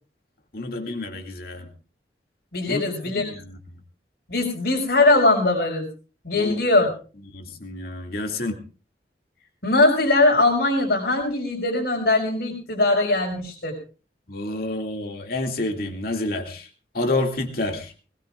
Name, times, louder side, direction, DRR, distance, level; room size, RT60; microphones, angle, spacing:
voice 1, 0.5-1.7 2.7-2.8 3.2-3.4 3.7-3.8 6.3-6.6 7.3-8.6 14.3-16.7 16.9-17.9, left 2 dB, 60° left, 3 dB, 2.3 m, -28 dB
voice 2, 2.5-3.3 4.3-5.8 6.2-6.9 9.6-13.7, left 2 dB, 75° left, -4 dB, 5.0 m, -20 dB
20.5 x 20.0 x 2.5 m, 0.36 s
head